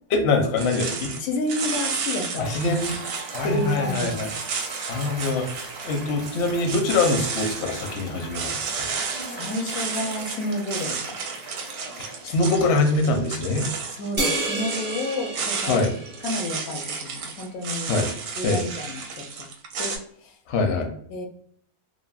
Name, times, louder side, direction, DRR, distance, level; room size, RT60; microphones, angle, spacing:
voice 1, 0.1-1.1 2.4-3.0 3.3-4.3 4.9-5.5 5.8-8.8 12.2-13.7 15.7-15.9 17.9-18.1 18.4-18.6 20.5-20.9, left 3 dB, 60° left, 4 dB, 0.7 m, -23 dB
sound 1, 0.6-20.0, right 5 dB, 75° right, 1.0 m, -32 dB
voice 2, 1.2-2.6 3.4-4.2 9.3-11.0 13.9-15.8 16.2-17.9 18.4-19.5 19.8-20.4 21.1-21.3, left 1 dB, 80° left, 5 dB, 1.0 m, -30 dB
Cheering / Applause / Crowd, 2.2-12.7, right 2 dB, 50° right, 0.9 m, -39 dB
sound 2, 14.2-16.9, right 2 dB, 30° right, 0.6 m, -30 dB
3.3 x 2.0 x 2.3 m, 0.64 s
omnidirectional pair, 1.5 m